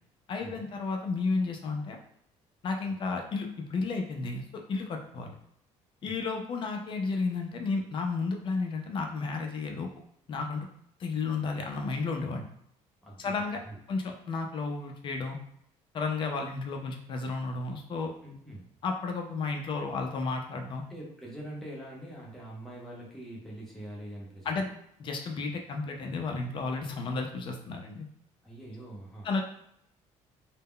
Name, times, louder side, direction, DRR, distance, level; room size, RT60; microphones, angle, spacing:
voice 1, 0.3-2.0 2.6-5.3 6.0-9.9 10.3-10.7 11.0-12.5 13.2-13.6 13.9-15.4 15.9-18.1 18.8-20.8 24.4-24.7 25.0-28.1 29.2-29.4, left 4 dB, 40° left, 3 dB, 0.4 m, -32 dB
voice 2, 13.0-13.3 13.6-13.8 18.2-18.7 19.9-20.0 20.7-24.7 28.4-29.4, right 1 dB, ahead, -5 dB, 0.7 m, -44 dB
2.1 x 2.0 x 3.6 m, 0.71 s
cardioid pair, 150°, 13 cm